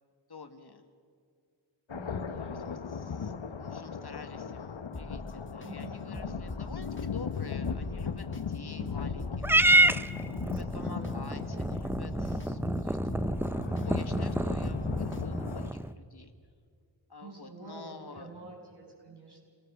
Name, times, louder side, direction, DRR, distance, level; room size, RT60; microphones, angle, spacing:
voice 1, 0.3-0.9 2.4-9.9 10.4-13.1 13.8-16.3 17.1-18.3, left 3 dB, 55° left, 7 dB, 1.6 m, -49 dB
sound 1, 1.9-15.7, left 6 dB, 70° left, 1.1 m, -37 dB
voice 2, 1.9-2.9 5.6-6.4 8.7-9.2 10.5-11.3 11.6-11.8 13.5-14.4 17.2-19.4, right 3 dB, 55° right, -2 dB, 7.4 m, -48 dB
sound 2, 4.9-5.7 6.1-7.0 7.5-8.4 8.9-9.8 10.2-11.1 11.6-12.5 12.9-13.9 14.3-15.2 15.7-15.8, left 1 dB, 25° left, 1.4 m, -42 dB
Purr / Meow, 9.4-15.9, right 1 dB, 5° right, 0.5 m, -28 dB
28.0 x 19.0 x 6.9 m, 2.1 s
wide cardioid pair, 70°, 47 cm